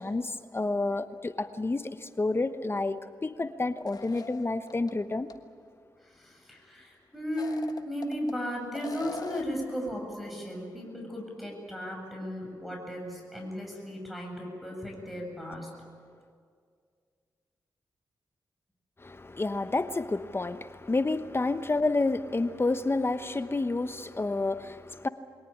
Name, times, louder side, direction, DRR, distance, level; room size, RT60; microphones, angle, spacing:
voice 1, 0.0-5.3 19.0-25.1, left 2 dB, 30° left, 11 dB, 1.0 m, -29 dB
sound 1, 3.8-4.9 5.3-5.4 7.2-8.3 8.7-9.6, left 5 dB, 55° left, 1.5 m, -41 dB
voice 2, 6.0-15.8, equal, ahead, -1 dB, 7.5 m, -36 dB
23.0 x 18.0 x 9.9 m, 2.1 s
cardioid pair, 55°, 8 cm